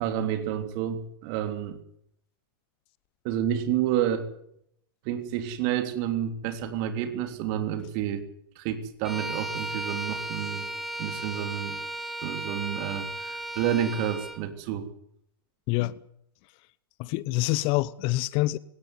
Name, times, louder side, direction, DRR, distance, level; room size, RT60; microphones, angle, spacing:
voice 1, 0.0-1.8 3.2-4.3 5.0-8.2 8.5-10.7 11.0-11.8 12.2-14.9, right 10 dB, 50° right, 3.3 m, -29 dB
Bowed string instrument, 9.0-14.4, right 1 dB, ahead, 3.0 m, -35 dB
voice 2, 15.7-16.0 17.0-18.6, left 19 dB, 45° left, 0.9 m, -26 dB
19.0 x 17.0 x 9.7 m
hypercardioid pair, 105°, 12 cm